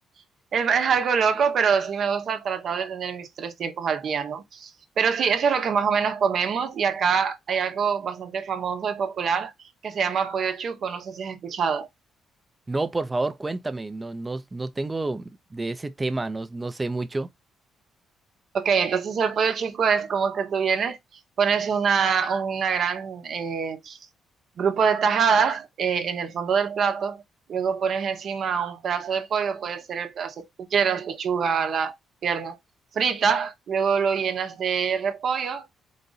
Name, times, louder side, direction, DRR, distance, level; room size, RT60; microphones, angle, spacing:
voice 1, 0.5-4.7 5.0-9.5 9.8-11.9 18.5-21.0 21.4-24.0 24.6-27.2 27.5-30.5 30.7-31.9 32.2-32.6 32.9-35.7, right 6 dB, 60° right, 0.9 m, -25 dB
voice 2, 12.7-17.3, right 2 dB, 20° right, 0.6 m, -29 dB
4.0 x 2.5 x 3.9 m
cardioid pair, 90°, 0 cm